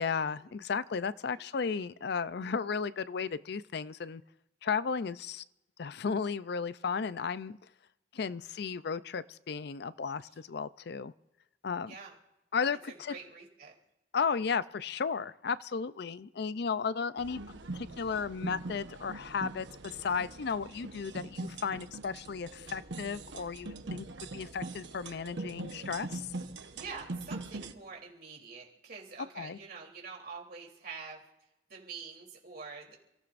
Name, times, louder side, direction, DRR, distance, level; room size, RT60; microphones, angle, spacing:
voice 1, 0.0-4.2 4.6-5.4 5.8-7.6 8.1-11.1 11.6-11.9 12.5-13.1 14.1-17.4 17.7-24.1 24.3-26.3 29.4-29.6, left 5 dB, 65° left, 16 dB, 0.5 m, -34 dB
voice 2, 12.9-13.7 16.6-16.7 26.7-31.2 31.7-33.0, right 5 dB, 60° right, -1 dB, 3.4 m, -46 dB
sound 1, 17.2-27.7, right 2 dB, 85° right, 1.0 m, -42 dB
29.5 x 16.0 x 2.6 m, 0.93 s
head